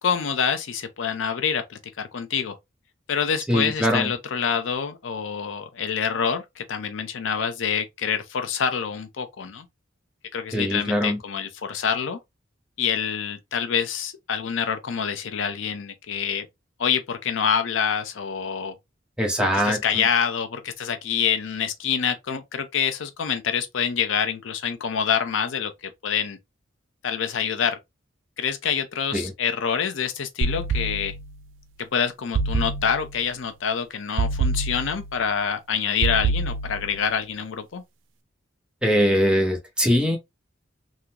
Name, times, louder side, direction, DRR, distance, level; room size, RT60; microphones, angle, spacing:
voice 1, 0.0-2.6 3.1-9.7 10.3-12.2 12.8-16.5 16.8-18.7 19.4-26.4 27.0-27.8 28.4-31.1 31.8-37.8, left 7 dB, 75° left, 0.5 m, -26 dB
voice 2, 3.5-4.1 10.5-11.2 19.2-20.0 29.1-29.3 38.8-40.2, equal, 5° right, 0.8 m, -22 dB
sound 1, 30.4-31.4 32.3-33.2 34.2-35.3 36.0-37.1, right 3 dB, 80° right, 0.4 m, -26 dB
3.7 x 2.0 x 2.8 m
head